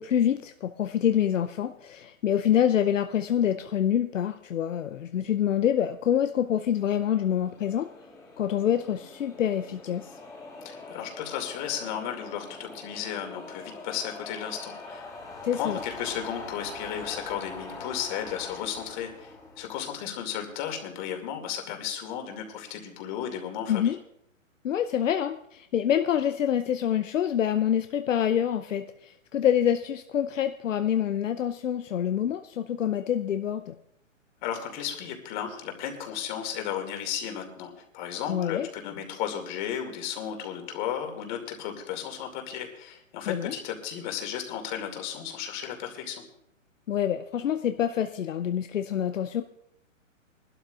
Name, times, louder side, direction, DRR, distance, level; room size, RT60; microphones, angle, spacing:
voice 1, 0.0-7.9 8.4-10.1 15.4-15.8 23.7-24.0 24.6-33.7 38.3-38.7 43.3-43.5 46.9-49.4, left 9 dB, 70° left, 8 dB, 0.7 m, -26 dB
sound 1, 6.3-20.6, left 3 dB, 10° left, 1.6 m, -44 dB
voice 2, 10.6-15.0 15.5-24.0 34.4-46.2, left 9 dB, 35° left, 4 dB, 2.4 m, -34 dB
22.5 x 12.0 x 2.5 m, 0.75 s
hypercardioid pair, 140°, 39 cm